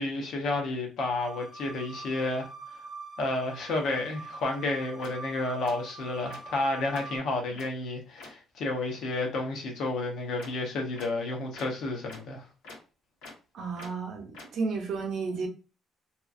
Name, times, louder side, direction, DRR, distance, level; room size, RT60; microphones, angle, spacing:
voice 1, 0.0-2.5 3.2-12.5, left 2 dB, 60° left, 0.7 m, -31 dB
sound 1, 1.2-7.2, right 3 dB, 15° left, 0.4 m, -45 dB
sound 2, 4.4-4.5 5.0-5.1 5.6-5.7 6.3-6.4 6.9-7.0 7.5-7.7 8.2-8.3 10.4-10.5 11.0-11.1 11.5-11.6 12.1-12.2 12.6-12.8 13.2-13.3 13.8-13.9 14.3-14.4, left 3 dB, 85° left, 1.1 m, -45 dB
voice 2, 13.5-15.5, right 4 dB, 50° right, 0.7 m, -32 dB
2.8 x 2.4 x 2.4 m
cardioid pair, 165°, 0 cm